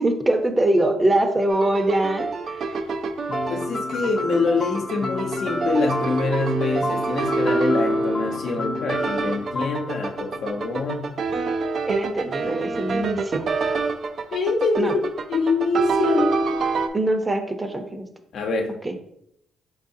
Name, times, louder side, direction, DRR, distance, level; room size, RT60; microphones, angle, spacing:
voice 1, 0.0-2.6 11.9-13.4 14.8-15.0 16.9-18.0 18.8-18.9, right 1 dB, 20° right, 6 dB, 0.7 m, -23 dB
sound 1, 1.5-16.9, right 3 dB, 55° right, 0.5 m, -26 dB
sound 2, 3.3-11.2, left 3 dB, 40° left, 0.5 m, -32 dB
voice 2, 3.5-11.1 14.3-15.0 15.3-16.4 18.3-18.7, left 3 dB, 65° left, 3 dB, 0.8 m, -25 dB
4.5 x 3.9 x 2.7 m, 0.72 s
cardioid pair, 90°, 0 cm